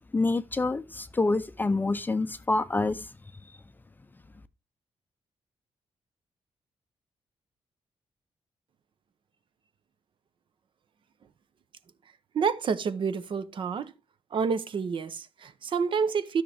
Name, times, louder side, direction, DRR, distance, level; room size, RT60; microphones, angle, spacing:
voice 1, 0.1-3.1, left 3 dB, 20° left, 0.5 m, -27 dB
voice 2, 12.3-13.9 14.3-16.4, right 6 dB, 55° right, 0.8 m, -28 dB
12.5 x 6.4 x 3.4 m
wide cardioid pair, 150°, 10 cm